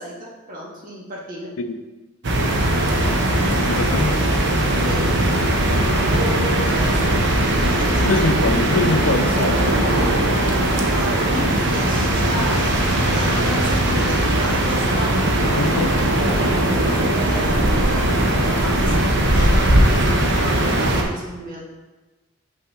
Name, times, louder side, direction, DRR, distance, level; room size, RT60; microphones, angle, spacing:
voice 1, 0.0-1.5 4.7-5.2 5.7-8.3 10.9-15.8 17.1-21.7, right 1 dB, 40° right, -3 dB, 1.6 m, -33 dB
sound 1, 2.2-21.0, right 1 dB, 60° right, 0.9 m, -19 dB
voice 2, 3.6-4.2 8.0-9.8 15.6-15.9, left 3 dB, 75° left, 7 dB, 0.6 m, -23 dB
sound 2, 9.5-20.1, equal, 10° left, 1.8 m, -36 dB
6.2 x 5.7 x 3.7 m, 1.2 s
head